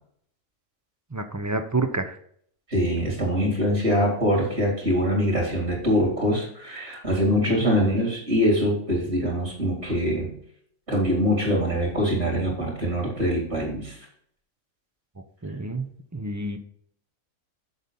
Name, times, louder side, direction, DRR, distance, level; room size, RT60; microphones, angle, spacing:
voice 1, 1.1-2.2 7.5-7.6 15.4-15.9 16.1-16.6, right 2 dB, 20° right, 7 dB, 0.5 m, -28 dB
voice 2, 2.7-10.3 10.9-14.1, equal, 50° right, -2 dB, 3.8 m, -23 dB
8.1 x 6.9 x 4.0 m, 0.64 s
omnidirectional pair, 1.4 m